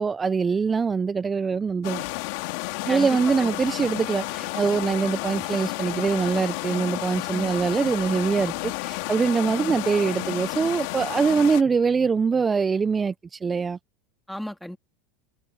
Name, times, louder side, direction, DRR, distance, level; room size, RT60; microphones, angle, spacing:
voice 1, 0.0-2.0 2.8-13.8, right 5 dB, 20° right, 0.4 m, -23 dB
sound 1, 1.8-11.6, left 24 dB, 65° left, 2.3 m, -31 dB
voice 2, 2.9-3.9 7.3-7.5 9.6-9.8 14.3-14.8, equal, ahead, 2.2 m, -36 dB
sound 2, 3.2-8.8, right 9 dB, 35° right, 3.1 m, -51 dB
supercardioid pair, 110°, 0 cm